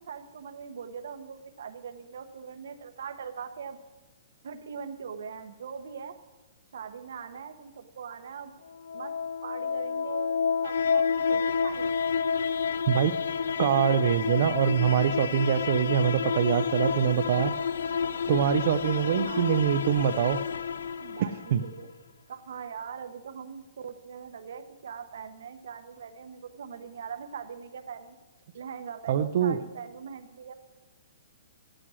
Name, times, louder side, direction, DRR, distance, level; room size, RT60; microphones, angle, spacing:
voice 1, 0.0-3.8 4.4-6.1 6.7-8.5 8.9-9.1 9.4-11.9 19.0-19.6 21.0-21.9 22.3-28.2 28.5-30.6, right 6 dB, 70° right, 8 dB, 0.8 m, -41 dB
sound 1, 8.7-21.7, left 6 dB, 80° left, 0.4 m, -29 dB
voice 2, 13.6-17.5 18.2-20.4 21.2-21.6 29.1-29.6, right 9 dB, 45° right, 8 dB, 0.5 m, -24 dB
12.0 x 8.8 x 6.2 m, 1.2 s
hypercardioid pair, 165°, 0 cm